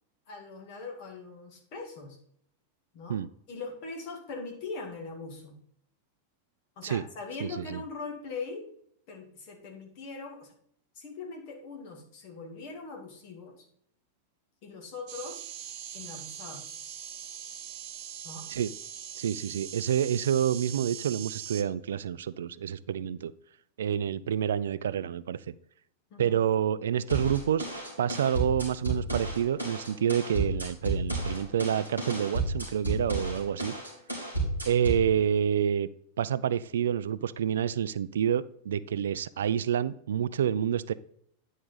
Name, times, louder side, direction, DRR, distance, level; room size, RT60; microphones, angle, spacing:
voice 1, 0.3-2.2 2.9-3.2 3.5-5.6 6.8-8.7 9.1-10.5 10.9-13.7 14.6-15.4 15.9-16.8 18.2-18.5 26.1-26.4, left 4 dB, 45° left, 2 dB, 2.3 m, -41 dB
voice 2, 7.4-7.8 18.5-18.7 19.2-23.3 23.8-25.4 26.2-27.7 28.0-33.7 34.7-35.9 36.2-40.9, right 9 dB, 65° right, 17 dB, 0.3 m, -28 dB
metro subway Montreal fluorescent light buzz neon tunnel, 15.1-21.6, right 9 dB, 45° right, 0.9 m, -42 dB
sound 1, 27.1-35.1, right 2 dB, 85° left, 3.1 m, -32 dB
9.7 x 5.1 x 3.9 m, 0.67 s
figure-of-eight pair, 90°, 0 cm